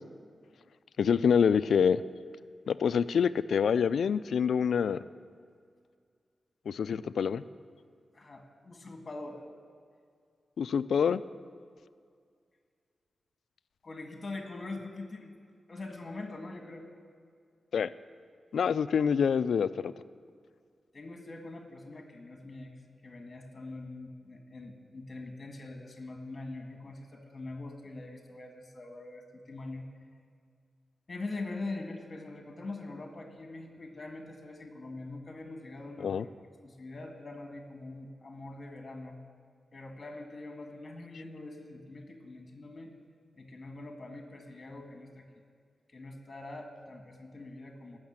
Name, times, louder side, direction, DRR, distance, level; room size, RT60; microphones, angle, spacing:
voice 1, 1.0-2.0 2.7-5.0 6.7-7.4 10.6-11.2 17.7-17.9 18.5-19.9 36.0-36.2, left 7 dB, 85° left, 14 dB, 0.4 m, -26 dB
voice 2, 8.1-9.4 13.8-15.3 15.7-16.9 20.9-29.9 31.1-36.3 36.6-39.2 39.7-42.9 43.4-45.3 45.9-48.0, left 2 dB, 30° left, 3 dB, 1.8 m, -43 dB
17.5 x 6.5 x 8.8 m, 2.2 s
wide cardioid pair, 170°, 0 cm